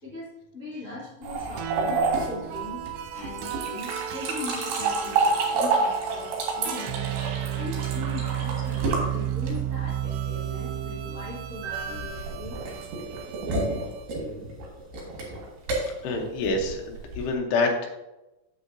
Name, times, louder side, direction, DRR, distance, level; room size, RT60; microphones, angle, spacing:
voice 1, 0.0-2.0 2.2-2.8 3.1-7.1 7.5-13.2, left 2 dB, 55° left, -9 dB, 0.8 m, -40 dB
sound 1, 1.2-9.9 11.6-17.3, right 3 dB, 70° right, 3.6 m, -29 dB
sound 2, 1.6-14.1, right 10 dB, 90° right, 2.1 m, -33 dB
voice 2, 16.0-17.9, left 3 dB, 80° left, 2 dB, 3.1 m, -27 dB
8.8 x 7.1 x 2.7 m, 0.98 s
omnidirectional pair, 4.9 m